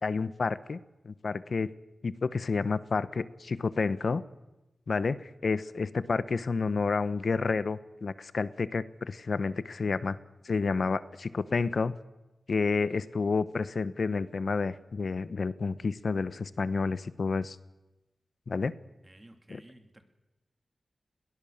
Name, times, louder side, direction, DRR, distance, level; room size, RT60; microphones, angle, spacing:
voice 1, 0.0-0.8 1.0-1.7 2.0-4.2 4.9-10.2 10.4-11.9 12.5-17.6 18.5-18.7 19.5-19.6, left 4 dB, 70° left, 15 dB, 0.9 m, -30 dB
voice 2, 19.0-20.0, right 1 dB, 25° right, 6 dB, 2.7 m, -54 dB
21.5 x 17.0 x 7.3 m, 1.0 s
cardioid pair, 55°, 0 cm